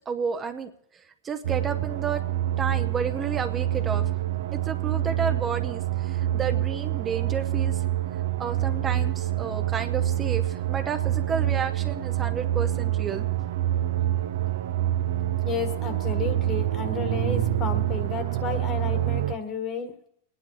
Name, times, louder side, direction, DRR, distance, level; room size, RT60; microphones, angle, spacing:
voice 1, 0.1-2.2 2.6-4.0 4.5-7.8 8.4-13.3, right 6 dB, 25° right, 6 dB, 0.8 m, -31 dB
sound 1, 1.4-19.3, right 13 dB, 70° right, 0.7 m, -26 dB
voice 2, 15.4-19.9, left 5 dB, 35° left, 7 dB, 1.7 m, -32 dB
23.0 x 9.9 x 3.3 m, 0.69 s
hypercardioid pair, 110°, 0 cm